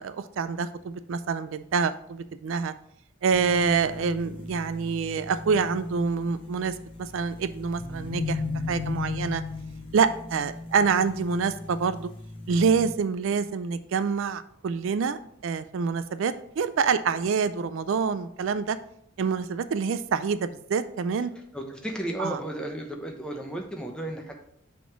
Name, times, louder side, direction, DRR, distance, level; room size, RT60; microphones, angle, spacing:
voice 1, 0.0-2.7 3.2-8.4 8.7-9.4 9.9-12.1 12.5-18.8 19.2-21.3 22.2-22.4, right 5 dB, 65° right, 13 dB, 0.3 m, -26 dB
sound 1, 3.3-12.9, left 3 dB, 25° left, 1.1 m, -36 dB
voice 2, 21.5-24.4, right 1 dB, 5° left, 2 dB, 0.8 m, -34 dB
6.1 x 3.7 x 5.8 m, 0.72 s
head